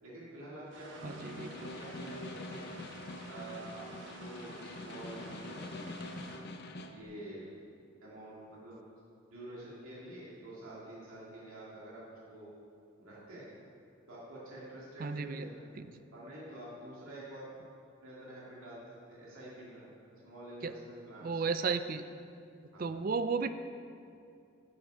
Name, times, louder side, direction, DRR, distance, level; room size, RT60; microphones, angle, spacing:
voice 1, 0.0-2.6 3.3-5.9 6.9-7.6 8.0-8.8 9.3-12.5 13.0-13.5 14.1-15.6 16.1-17.5 18.0-21.4 22.7-22.9, right 1 dB, 90° right, -7 dB, 2.2 m, -48 dB
sound 1, 0.7-6.4, right 2 dB, 60° right, 1.3 m, -51 dB
Snare drum, 0.9-7.0, left 2 dB, 50° left, 0.6 m, -45 dB
voice 2, 1.0-1.7 15.0-15.5 15.8-15.9 20.6-20.7 21.2-22.0 22.8-23.5, right 5 dB, 40° right, 11 dB, 0.4 m, -34 dB
10.5 x 6.8 x 5.5 m, 2.5 s
head